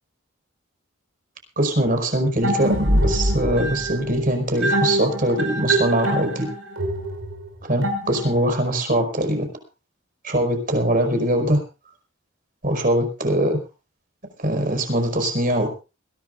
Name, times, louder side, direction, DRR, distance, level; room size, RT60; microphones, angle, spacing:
voice 1, 1.6-6.5 7.7-9.5 10.2-11.6 12.6-13.6 14.4-15.7, right 1 dB, 45° right, 6 dB, 5.1 m, -22 dB
sound 1, 2.4-8.6, right 1 dB, 85° right, 5.9 m, -24 dB
22.0 x 17.0 x 2.5 m, 0.31 s
head